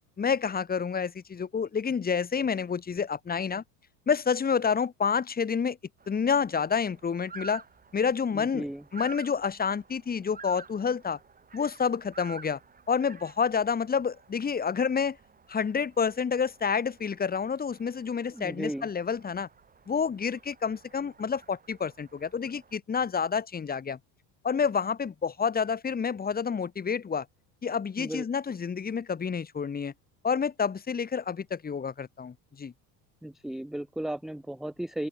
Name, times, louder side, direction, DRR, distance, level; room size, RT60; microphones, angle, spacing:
voice 1, 0.2-3.6 4.1-5.8 6.1-7.6 7.9-8.6 8.9-11.2 11.5-12.6 12.9-15.2 15.5-19.5 19.9-24.0 24.4-27.3 27.6-29.9 30.2-32.7, left 6 dB, 20° left, 1.7 m, -29 dB
sound 1, 6.0-22.8, right 5 dB, 20° right, 2.7 m, -51 dB
voice 2, 8.3-8.8 18.3-18.9 28.0-28.2 33.2-35.1, right 1 dB, ahead, 0.5 m, -35 dB
open air
supercardioid pair, 110°, 44 cm